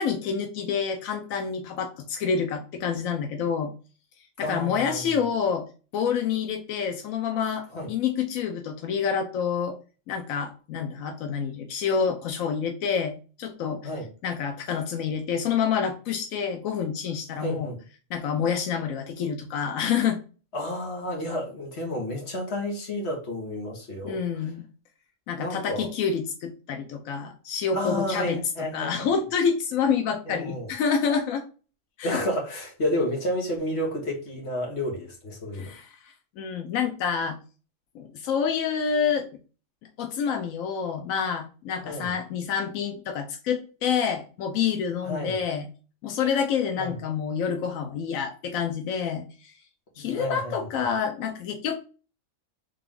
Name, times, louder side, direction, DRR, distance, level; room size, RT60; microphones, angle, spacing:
voice 1, 0.0-3.7 4.4-5.7 5.9-9.8 10.1-13.8 14.2-17.7 18.1-20.2 24.0-24.6 25.3-28.4 28.7-31.4 32.0-32.2 35.5-37.4 37.9-39.3 40.0-45.7 46.0-49.5 50.0-51.8, left 7 dB, 90° left, 1.1 m, -28 dB
voice 2, 4.4-5.2 7.7-7.9 13.8-14.1 17.3-17.8 20.5-24.2 25.4-25.9 27.7-29.1 30.3-30.7 32.0-35.7 41.8-42.1 45.0-45.4 46.8-46.9 50.0-50.7, left 1 dB, 55° left, 1.6 m, -31 dB
3.6 x 3.3 x 3.6 m
omnidirectional pair, 1.4 m